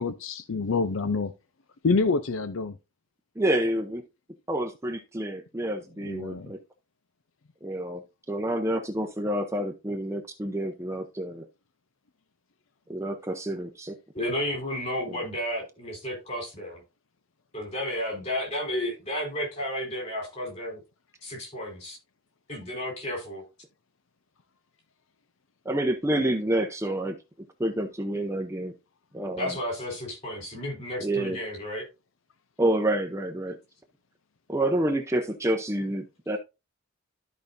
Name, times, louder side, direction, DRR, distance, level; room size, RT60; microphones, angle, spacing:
voice 1, 0.0-1.3 1.8-2.7 6.0-6.5, left 4 dB, 70° left, 0.6 m, -27 dB
voice 2, 3.4-4.0 4.5-6.6 7.6-8.0 8.3-11.5 12.9-14.0 15.1-15.2 25.7-27.2 27.6-28.7 29.1-29.6 31.0-31.4 32.6-33.6 34.5-36.4, right 1 dB, 15° right, 0.7 m, -28 dB
voice 3, 14.1-16.8 17.5-20.8 21.2-22.0 22.5-23.4 29.3-31.8, left 1 dB, 35° left, 4.3 m, -32 dB
13.0 x 5.1 x 2.6 m
head